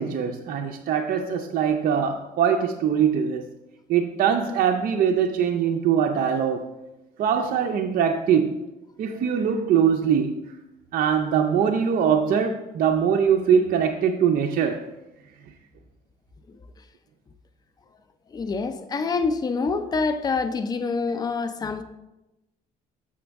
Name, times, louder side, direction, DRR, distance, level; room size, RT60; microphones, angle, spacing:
voice 1, 0.0-3.5 3.9-6.7 7.2-8.6 9.0-10.4 10.9-14.8, right 7 dB, 55° right, 4 dB, 0.5 m, -22 dB
voice 2, 18.3-21.8, left 4 dB, 25° left, 8 dB, 0.5 m, -26 dB
7.0 x 6.2 x 3.4 m, 0.98 s
cardioid pair, 110°, 17 cm